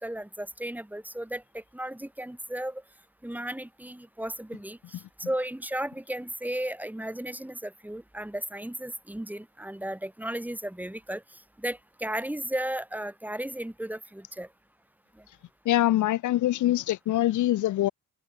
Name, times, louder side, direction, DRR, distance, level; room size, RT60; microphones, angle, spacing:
voice 1, 0.0-2.8 3.2-11.2 11.6-14.5, right 1 dB, 5° right, 3.1 m, -35 dB
voice 2, 15.6-17.9, left 14 dB, 80° left, 1.4 m, -24 dB
cardioid pair, 90°, 30 cm